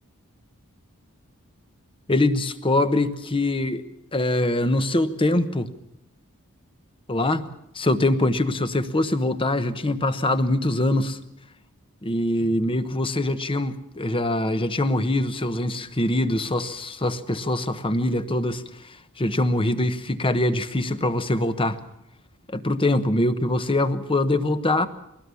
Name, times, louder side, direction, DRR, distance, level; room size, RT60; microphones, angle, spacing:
voice 1, 2.1-3.8 4.1-5.7 7.1-7.4 7.7-11.2 12.0-21.8 22.5-24.9, left 1 dB, 25° left, 11 dB, 1.0 m, -23 dB
21.5 x 19.0 x 7.0 m, 0.81 s
head